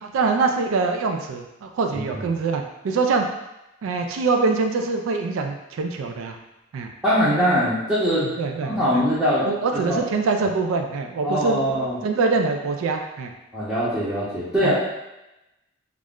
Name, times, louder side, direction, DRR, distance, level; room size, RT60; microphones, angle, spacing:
voice 1, 0.0-3.3 3.8-6.4 6.7-6.9 8.2-9.0 9.4-11.6 12.0-13.3 14.6-14.7, right 4 dB, 75° right, 4 dB, 0.3 m, -24 dB
voice 2, 7.0-8.3 8.6-9.5 9.7-10.0 11.2-12.0 13.5-14.7, equal, 10° right, -13 dB, 0.7 m, -22 dB
2.4 x 2.1 x 3.5 m, 0.94 s
head